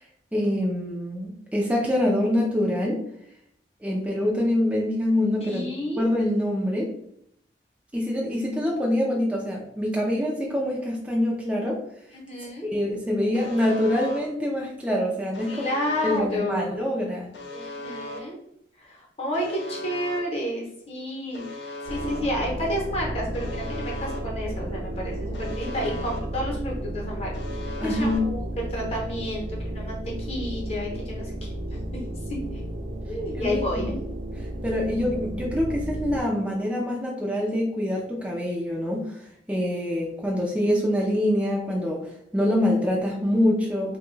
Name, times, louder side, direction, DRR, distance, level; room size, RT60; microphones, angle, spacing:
voice 1, 0.3-3.0 3.8-5.7 6.0-6.9 7.9-11.8 12.6-15.7 16.0-17.3 27.8-28.2 33.4-33.6 34.6-44.0, left 1 dB, 5° right, -2 dB, 0.4 m, -25 dB
voice 2, 5.4-6.1 12.1-12.7 15.5-16.7 17.5-18.4 18.8-21.6 21.8-27.3 27.8-31.3 32.3-32.6 33.1-34.0, equal, 35° left, -2 dB, 0.8 m, -30 dB
Alarm, 13.3-14.2 15.3-16.2 17.3-18.2 19.3-20.2 21.3-22.2 23.3-24.2 25.3-26.2 27.3-28.2, left 1 dB, 80° left, 0.6 m, -37 dB
sound 1, 21.9-36.2, right 1 dB, 65° right, 0.5 m, -33 dB
2.9 x 2.2 x 3.1 m, 0.72 s
head